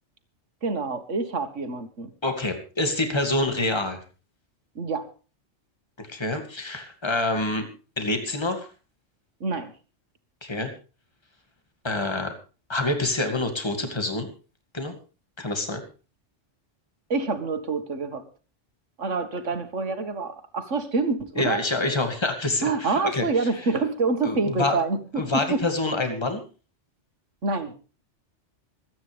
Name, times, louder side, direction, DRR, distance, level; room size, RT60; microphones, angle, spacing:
voice 1, 0.6-2.1 4.8-5.1 9.4-9.7 17.1-18.2 19.0-21.6 22.6-25.7 27.4-27.7, right 3 dB, 85° right, 8 dB, 2.0 m, -27 dB
voice 2, 2.2-4.0 6.0-7.7 8.0-8.7 10.4-10.7 11.8-12.3 12.7-14.3 14.7-14.9 15.4-15.8 21.4-23.2 24.2-24.8 25.2-26.4, left 2 dB, 20° left, 6 dB, 2.3 m, -26 dB
26.0 x 9.5 x 3.4 m, 0.35 s
omnidirectional pair, 1.2 m